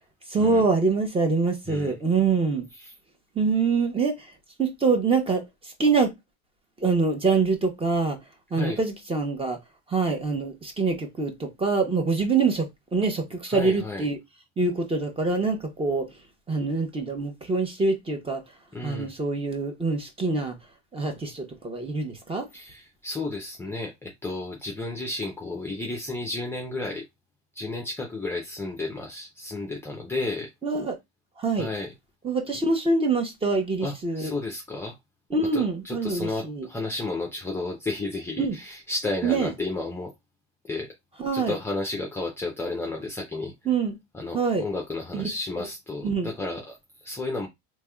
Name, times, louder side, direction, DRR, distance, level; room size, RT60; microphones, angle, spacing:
voice 1, 0.3-2.7 3.3-4.3 4.6-6.1 6.8-8.2 8.5-9.6 9.9-14.2 14.6-16.1 16.5-18.4 18.8-20.6 20.9-22.5 30.6-31.0 31.4-31.7 32.2-34.3 35.3-36.7 38.4-38.5 39.2-39.5 41.2-41.6 43.6-44.0 44.3-44.7 45.1-45.3 45.6-45.7 46.0-46.3, right 4 dB, 15° right, 0.9 m, -25 dB
voice 2, 13.5-14.0 18.7-19.1 22.5-27.0 27.5-30.5 31.6-31.9 33.8-35.0 35.5-40.1 40.7-40.9 41.3-43.5 44.1-47.5, left 2 dB, 5° left, 0.5 m, -32 dB
3.4 x 3.2 x 2.3 m
supercardioid pair, 125°, 36 cm